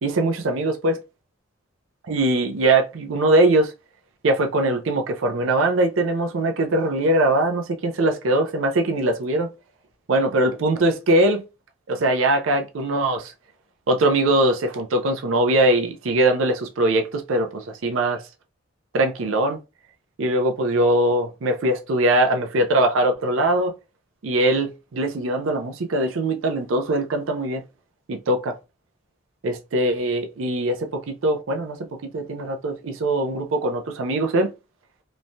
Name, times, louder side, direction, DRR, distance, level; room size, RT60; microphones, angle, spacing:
voice 1, 0.0-1.0 2.1-3.7 4.2-9.5 10.1-11.4 11.9-13.3 13.9-18.2 18.9-19.6 20.2-23.7 24.2-27.6 28.1-28.5 29.4-31.8 32.0-34.5, right 1 dB, 90° right, 0.5 m, -21 dB
3.1 x 2.1 x 2.6 m
head